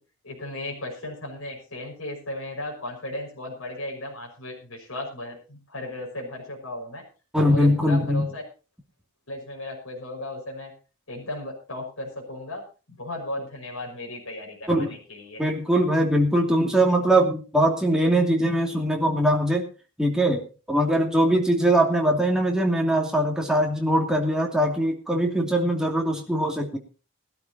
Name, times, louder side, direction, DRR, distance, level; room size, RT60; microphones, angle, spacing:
voice 1, 0.2-7.0 7.4-8.4 9.3-10.7 11.1-15.4, left 1 dB, 65° left, -1 dB, 5.6 m, -35 dB
voice 2, 7.3-8.3 14.7-15.0 15.4-19.7 20.0-20.4 20.7-26.8, right 1 dB, 5° right, 0 dB, 2.7 m, -21 dB
20.5 x 12.5 x 2.9 m, 0.33 s
head